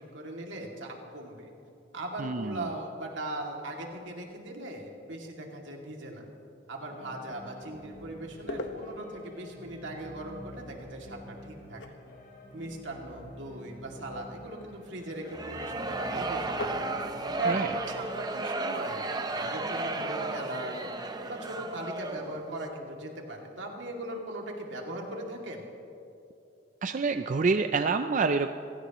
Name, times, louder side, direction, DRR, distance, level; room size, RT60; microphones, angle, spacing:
voice 1, 0.0-1.5 1.9-6.3 6.7-11.8 12.5-16.7 17.4-19.0 19.3-20.9 21.3-25.7, right 2 dB, 80° right, 0 dB, 2.5 m, -38 dB
voice 2, 2.2-2.7 17.5-17.7 26.8-28.5, right 4 dB, 45° right, 8 dB, 0.4 m, -27 dB
sound 1, 6.8-18.1, equal, 55° left, 3.5 m, -49 dB
sound 2, 8.3-22.8, left 2 dB, 75° left, 1.3 m, -47 dB
sound 3, 15.2-22.4, right 2 dB, 20° right, 0.8 m, -34 dB
27.5 x 16.5 x 3.1 m, 2.7 s
head